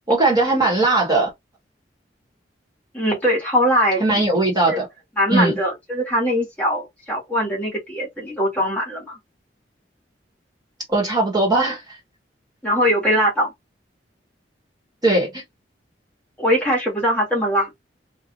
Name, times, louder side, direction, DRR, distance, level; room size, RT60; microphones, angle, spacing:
voice 1, 0.1-1.3 4.0-4.9 5.3-5.6 10.9-11.8 15.0-15.4, right 2 dB, 20° right, 1.3 m, -19 dB
voice 2, 2.9-4.2 4.7-4.8 5.2-9.2 12.6-13.5 16.4-17.7, equal, 10° left, 1.3 m, -21 dB
2.6 x 2.3 x 2.9 m
head